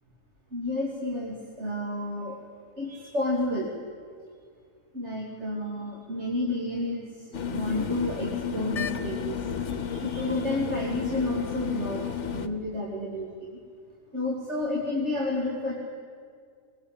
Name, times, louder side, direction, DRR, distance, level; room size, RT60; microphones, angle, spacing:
voice 1, 0.5-2.4 2.8-3.7 4.9-12.1 12.3-13.6 14.1-15.8, left 1 dB, 50° right, -3 dB, 3.1 m, -31 dB
sound 1, 7.3-12.5, left 7 dB, 55° left, 1.3 m, -32 dB
23.0 x 21.5 x 8.8 m, 2.1 s
omnidirectional pair, 1.6 m